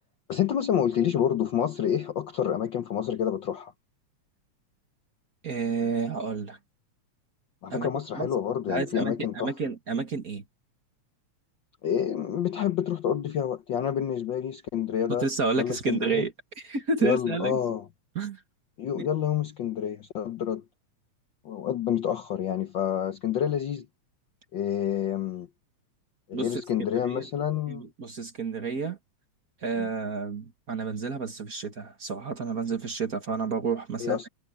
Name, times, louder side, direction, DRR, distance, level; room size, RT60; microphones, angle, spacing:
voice 1, 0.3-3.7 7.6-9.5 11.8-15.3 15.6-16.3 17.0-17.9 18.8-20.6 21.4-23.9 24.5-25.5 26.3-27.8 29.7-29.9 34.0-34.3, left 9 dB, 90° left, 1.0 m, -28 dB
voice 2, 5.4-6.6 7.7-7.9 8.1-8.3 8.7-10.4 15.2-16.3 16.7-17.6 18.1-18.4 26.3-26.5 26.9-27.2 27.7-29.0 29.6-34.3, right 5 dB, 35° right, 1.6 m, -30 dB
omnidirectional pair, 3.4 m